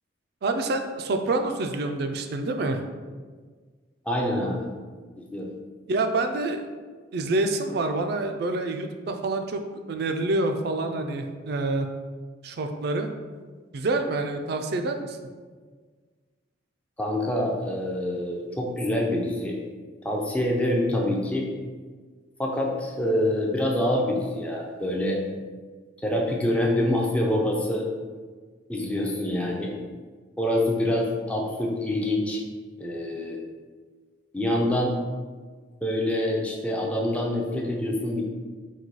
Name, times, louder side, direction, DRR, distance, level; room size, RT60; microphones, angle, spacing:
voice 1, 0.4-2.8 5.9-6.7 7.1-9.6 9.9-11.9 12.4-13.1 13.7-15.3, right 2 dB, 55° right, 6 dB, 0.4 m, -27 dB
voice 2, 4.1-4.7 5.2-5.5 17.0-19.6 20.0-21.5 22.4-25.2 26.0-27.9 28.7-29.7 30.4-32.4 32.8-33.4 34.3-35.0 35.8-38.2, left 1 dB, 5° left, -1 dB, 0.4 m, -26 dB
3.9 x 2.3 x 4.6 m, 1.5 s
head